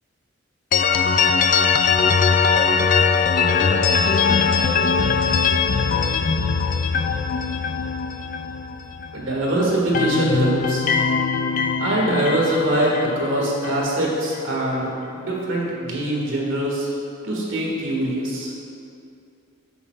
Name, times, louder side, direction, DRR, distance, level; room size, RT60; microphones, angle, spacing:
sound 1, 0.7-9.4 9.7-13.8, left 5 dB, 40° left, 0.3 m, -21 dB
voice 1, 9.1-10.9 11.8-16.9 17.2-18.5, right 1 dB, 65° right, -3 dB, 1.9 m, -23 dB
11.0 x 8.9 x 2.4 m, 2.5 s
head